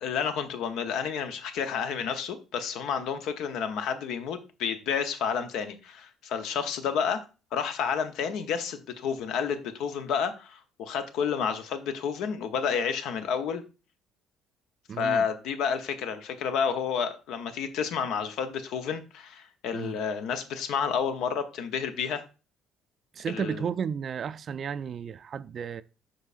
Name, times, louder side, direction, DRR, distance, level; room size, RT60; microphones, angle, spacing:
voice 1, 0.0-7.2 7.5-13.6 15.0-22.2 23.3-23.7, left 7 dB, 65° left, 0.8 m, -30 dB
voice 2, 14.9-15.3 19.7-20.0 23.1-25.8, right 7 dB, 45° right, 0.3 m, -33 dB
7.8 x 5.7 x 2.5 m
hypercardioid pair, 55°, 0 cm